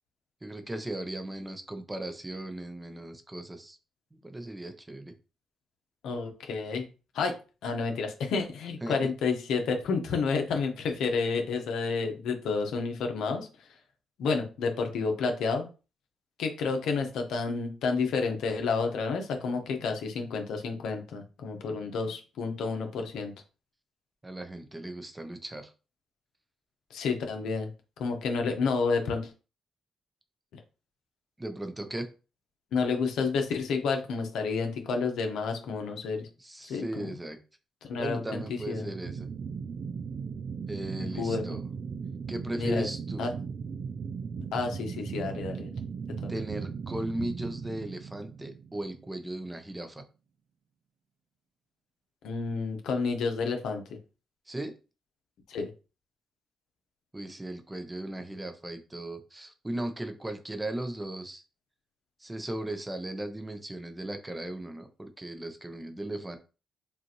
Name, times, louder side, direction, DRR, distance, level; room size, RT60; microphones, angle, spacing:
voice 1, 0.4-3.8 4.1-5.1 8.8-9.1 24.2-25.7 31.4-32.1 36.4-37.4 38.0-39.3 40.7-41.6 42.3-43.3 46.3-50.0 54.5-54.7 57.1-61.4 62.2-66.4, right 1 dB, 15° right, 7 dB, 0.7 m, -37 dB
voice 2, 6.0-6.9 7.1-7.3 7.6-13.5 14.2-15.7 16.4-23.3 26.9-27.7 28.0-29.3 32.7-36.3 36.6-37.1 37.8-38.9 41.0-41.5 42.6-42.9 43.2-43.3 44.5-45.7 52.2-53.8 55.5-55.7, left 4 dB, 75° left, 4 dB, 0.9 m, -30 dB
sound 1, 38.3-49.3, right 6 dB, 55° right, 0.3 m, -38 dB
5.3 x 2.5 x 3.0 m, 0.33 s
cardioid pair, 90°, 0 cm